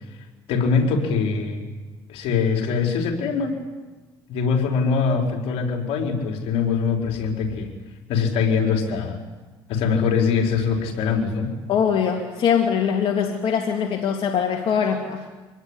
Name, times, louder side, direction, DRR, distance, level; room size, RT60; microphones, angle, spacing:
voice 1, 0.5-1.6 2.1-3.6 4.3-7.7 8.1-9.2 9.7-11.5, left 5 dB, 75° left, 2 dB, 4.5 m, -22 dB
voice 2, 11.7-15.3, left 7 dB, 60° left, 2 dB, 2.7 m, -22 dB
25.5 x 19.5 x 9.9 m, 1.2 s
supercardioid pair, 85°, 10 cm